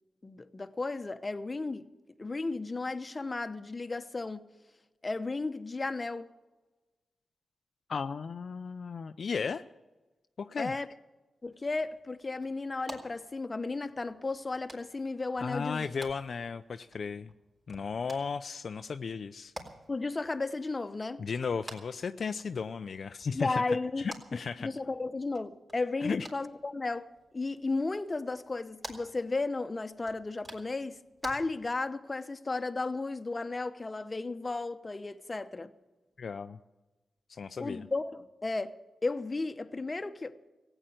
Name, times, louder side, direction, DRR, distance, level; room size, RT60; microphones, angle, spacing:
voice 1, 0.2-1.9 2.2-4.5 5.0-6.3 10.6-10.9 11.4-15.9 19.9-21.2 23.3-24.0 24.3-27.1 27.3-35.7 37.6-38.8 39.0-40.5, left 3 dB, 30° left, 0.9 m, -34 dB
voice 2, 7.9-9.6 10.4-10.7 15.4-17.3 17.7-19.5 21.2-23.6 24.0-24.7 26.0-26.3 36.2-36.6 37.3-37.9, left 5 dB, 60° left, 0.4 m, -35 dB
sound 1, 11.5-31.4, right 1 dB, 35° right, 3.8 m, -52 dB
15.5 x 8.9 x 9.0 m
cardioid pair, 65°, 0 cm